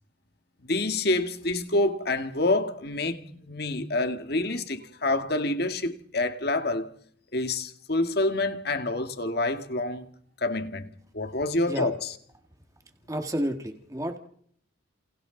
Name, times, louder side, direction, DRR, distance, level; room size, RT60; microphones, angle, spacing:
voice 1, 0.6-6.9 7.3-10.1 10.4-10.9 11.1-12.2, left 2 dB, 50° left, 1.9 m, -27 dB
voice 2, 13.1-14.2, equal, 15° right, 1.9 m, -30 dB
29.0 x 28.5 x 4.0 m
head